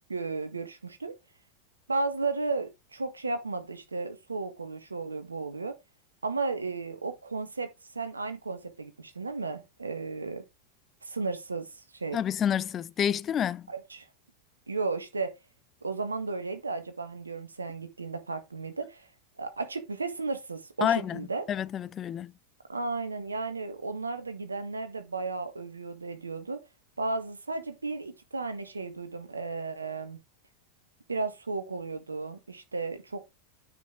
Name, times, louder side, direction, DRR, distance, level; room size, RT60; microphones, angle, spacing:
voice 1, 0.1-1.1 1.9-5.8 6.2-10.4 11.0-11.7 11.9-12.2 13.7-14.0 14.7-15.3 15.8-19.1 19.4-21.5 22.7-26.6 27.0-30.2 31.1-33.2, right 3 dB, 80° right, 1.5 m, -34 dB
voice 2, 12.1-13.7 20.8-21.2 21.5-22.3, left 9 dB, 25° left, 0.3 m, -28 dB
9.2 x 5.4 x 3.8 m
figure-of-eight pair, 90°, 0 cm